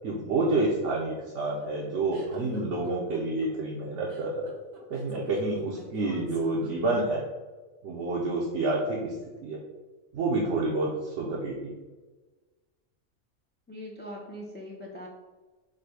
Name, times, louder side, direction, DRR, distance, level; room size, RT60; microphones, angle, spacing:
voice 1, 0.0-4.5 4.9-7.2 7.8-9.1 9.4-9.6 10.1-11.7, right 2 dB, 70° right, -4 dB, 1.0 m, -28 dB
sound 1, 0.9-7.2, right 2 dB, 90° right, 1.4 m, -49 dB
voice 2, 13.7-15.1, equal, 15° left, -2 dB, 0.4 m, -41 dB
4.9 x 2.2 x 4.6 m, 1.2 s
omnidirectional pair, 1.3 m